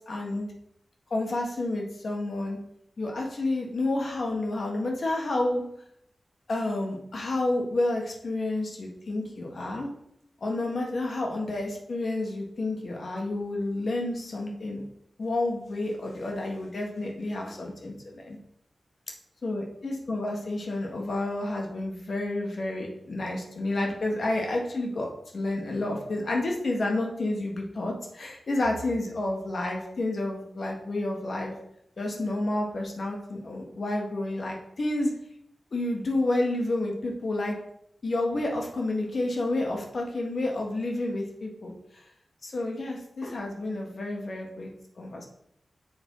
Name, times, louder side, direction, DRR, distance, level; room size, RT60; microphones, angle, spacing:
voice 1, 0.1-0.5 1.1-2.6 3.0-5.6 6.5-9.9 10.4-14.8 15.2-18.4 19.4-25.1 25.3-31.5 32.0-35.1 35.7-37.5 38.0-42.0 42.4-44.7 45.0-45.3, left 2 dB, 70° left, 0 dB, 1.6 m, -30 dB
7.1 x 3.4 x 5.6 m, 0.75 s
cardioid pair, 40°, 0 cm